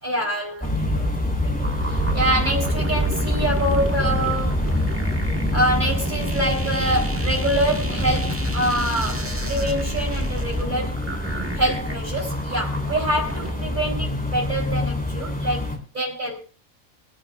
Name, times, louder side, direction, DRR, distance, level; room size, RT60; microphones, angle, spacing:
voice 1, 0.0-4.7 5.5-11.0 11.5-16.4, right 1 dB, 35° right, 0 dB, 3.9 m, -26 dB
sound 1, 0.6-15.8, left 1 dB, 5° left, 3.1 m, -26 dB
sound 2, 1.3-6.6, right 1 dB, 60° right, 5.5 m, -34 dB
sound 3, 1.6-13.5, right 1 dB, 10° right, 1.5 m, -33 dB
24.5 x 11.0 x 2.4 m, 0.34 s
omnidirectional pair, 1.3 m